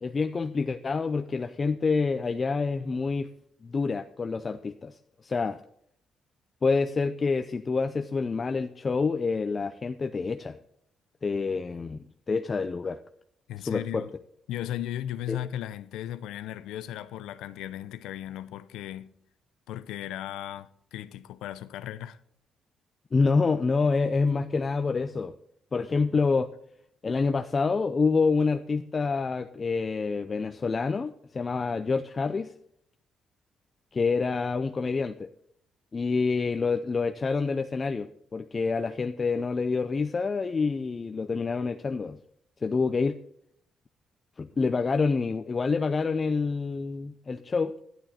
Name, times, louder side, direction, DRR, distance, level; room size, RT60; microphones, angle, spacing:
voice 1, 0.0-3.3 3.6-5.6 6.6-10.6 11.2-12.0 12.3-13.0 13.7-14.0 15.3-15.4 23.1-25.3 25.7-26.5 27.0-32.5 33.9-35.3 35.9-42.2 42.6-43.2 44.4-47.7, left 4 dB, 35° left, 0.5 m, -27 dB
voice 2, 13.5-14.1 14.5-19.1 19.7-22.2, left 12 dB, 90° left, 0.6 m, -36 dB
11.0 x 10.5 x 4.2 m
cardioid pair, 90°, 0 cm